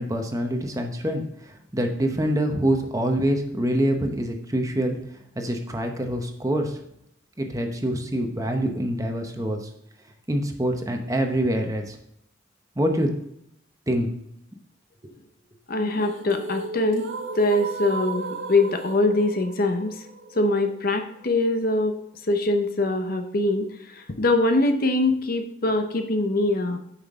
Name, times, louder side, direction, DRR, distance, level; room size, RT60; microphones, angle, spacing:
voice 1, 0.0-5.0 5.4-6.8 7.4-9.7 10.3-12.0 12.8-13.1 13.9-14.1, right 1 dB, 15° right, 4 dB, 0.8 m, -25 dB
voice 2, 15.7-17.1 17.3-20.1 20.3-21.9 22.2-26.8, left 2 dB, 50° left, 6 dB, 0.8 m, -23 dB
sound 1, 15.7-21.8, right 3 dB, 75° right, 1.0 m, -35 dB
9.0 x 5.9 x 3.6 m, 0.75 s
head